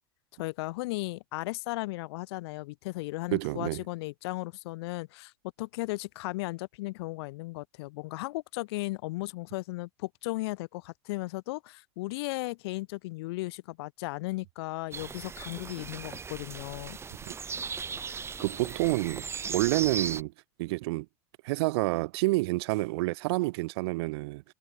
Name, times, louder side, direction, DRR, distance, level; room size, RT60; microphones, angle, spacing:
voice 1, 0.4-5.3 5.6-17.0, left 21 dB, 75° left, 2.3 m, -36 dB
voice 2, 3.3-3.8 18.4-20.3 20.6-21.1 21.4-24.4, right 22 dB, 70° right, 2.8 m, -28 dB
sound 1, 14.9-20.2, right 5 dB, 20° right, 2.9 m, -38 dB
supercardioid pair, 130°, 14 cm